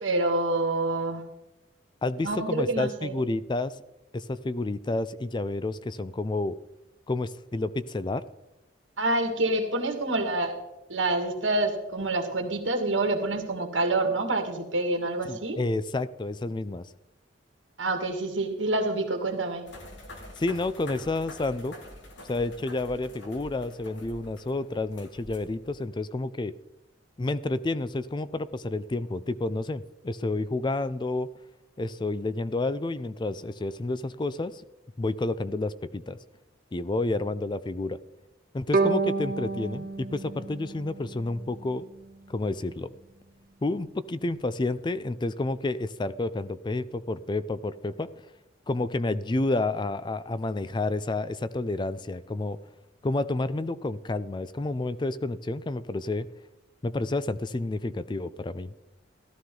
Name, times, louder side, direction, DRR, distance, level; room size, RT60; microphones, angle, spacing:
voice 1, 0.0-1.3 2.2-3.2 9.0-10.6 10.9-15.6 17.8-19.7, right 2 dB, 80° right, 5 dB, 2.1 m, -27 dB
voice 2, 2.0-3.8 4.1-6.6 7.1-8.3 15.3-16.9 20.4-21.7 22.3-26.5 27.2-31.3 31.8-34.6 35.0-36.2 36.7-38.0 38.5-41.9 42.3-42.9 43.6-48.1 48.7-52.6 53.0-56.3 56.8-58.7, left 2 dB, 25° left, 15 dB, 0.4 m, -30 dB
sound 1, 19.7-25.8, left 1 dB, 65° left, 2.4 m, -46 dB
Bowed string instrument, 38.7-41.8, right 3 dB, 50° right, 1.5 m, -29 dB
14.5 x 12.5 x 3.9 m, 0.96 s
head